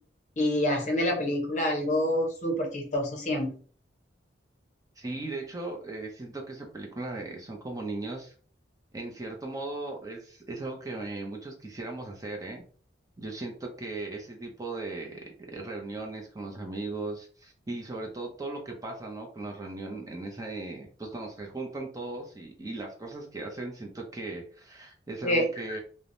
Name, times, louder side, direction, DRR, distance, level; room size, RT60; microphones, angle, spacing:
voice 1, 0.4-3.5 25.2-25.8, left 1 dB, 40° left, 1 dB, 0.7 m, -27 dB
voice 2, 5.0-8.3 8.9-12.6 13.2-25.8, right 2 dB, 20° right, 1 dB, 0.5 m, -37 dB
3.2 x 2.1 x 2.5 m, 0.43 s
head